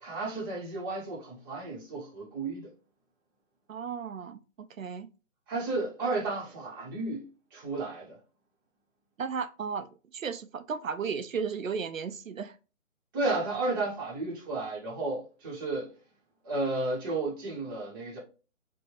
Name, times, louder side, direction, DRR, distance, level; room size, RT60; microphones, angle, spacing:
voice 1, 0.0-2.7 5.5-8.2 13.1-15.9 16.4-18.2, right 2 dB, 15° right, 0.9 m, -33 dB
voice 2, 3.7-5.1 9.2-12.6, right 6 dB, 85° right, 0.5 m, -35 dB
4.2 x 2.2 x 3.3 m
figure-of-eight pair, 140°, 39 cm